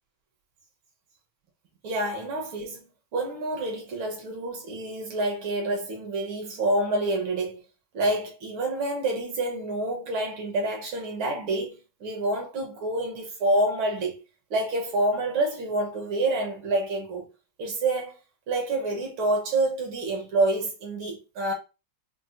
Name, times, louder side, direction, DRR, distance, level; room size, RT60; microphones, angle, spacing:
voice 1, 1.8-2.9 3.1-7.6 7.9-14.2 14.5-17.3 17.6-18.2 18.5-21.5, right 2 dB, 75° right, 2.1 m, -27 dB
6.0 x 2.1 x 2.6 m
omnidirectional pair, 2.3 m